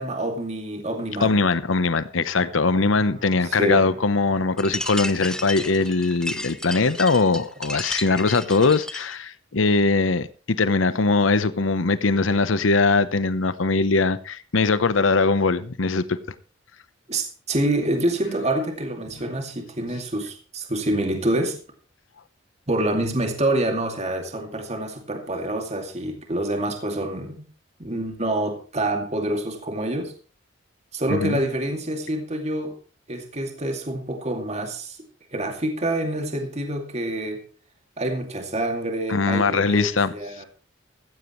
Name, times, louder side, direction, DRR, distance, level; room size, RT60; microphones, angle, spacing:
voice 1, 0.0-1.3 3.4-3.9 17.1-21.6 22.7-27.5 27.8-30.1 30.9-32.7 33.1-35.0 35.3-37.4 38.0-40.5, right 1 dB, 35° right, 2.4 m, -27 dB
voice 2, 1.2-16.2 31.1-31.4 39.1-40.4, left 3 dB, 80° left, 0.9 m, -21 dB
sound 1, 2.3-7.7, right 3 dB, 55° right, 5.8 m, -49 dB
sound 2, 4.6-9.2, left 1 dB, 5° left, 0.8 m, -33 dB
15.0 x 15.0 x 3.1 m
head